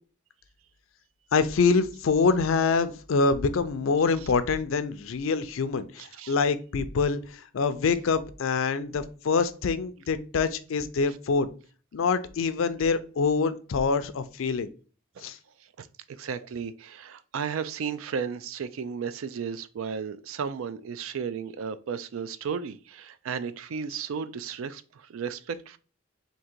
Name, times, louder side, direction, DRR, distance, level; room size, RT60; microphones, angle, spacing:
voice 1, 1.3-7.2 7.5-11.5 11.9-14.7 15.2-15.4, left 4 dB, 70° left, 0.4 m, -25 dB
voice 2, 6.0-6.3 15.2-15.3 15.8-25.8, right 6 dB, 75° right, 0.4 m, -34 dB
3.7 x 2.7 x 4.3 m
head